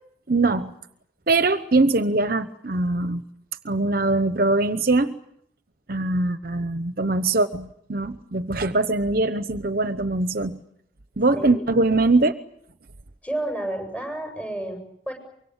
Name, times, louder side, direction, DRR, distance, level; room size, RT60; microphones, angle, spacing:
voice 1, 0.3-0.7 1.3-3.2 3.6-5.2 5.9-10.6 11.2-12.3, right 2 dB, 50° right, 11 dB, 0.9 m, -22 dB
voice 2, 11.3-11.6 13.2-15.1, right 1 dB, 5° left, 4 dB, 7.9 m, -31 dB
24.5 x 24.0 x 8.1 m, 0.71 s
head